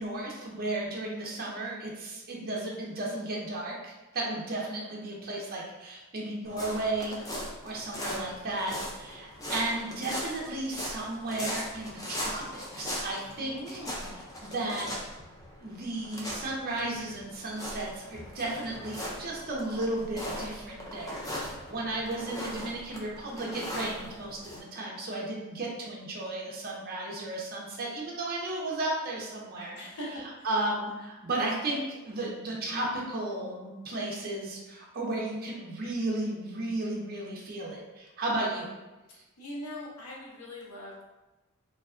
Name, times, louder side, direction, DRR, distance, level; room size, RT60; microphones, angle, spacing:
voice 1, 0.0-7.2 7.6-13.8 14.4-14.9 15.6-29.8 30.2-38.7, right 2 dB, 40° right, -2 dB, 0.5 m, -34 dB
sound 1, 6.4-24.6, equal, 15° left, 0.3 m, -39 dB
voice 2, 13.4-14.2 29.7-30.1 30.4-30.5 39.4-41.0, left 1 dB, 75° left, -4 dB, 0.7 m, -41 dB
2.6 x 2.2 x 2.4 m, 1.1 s
head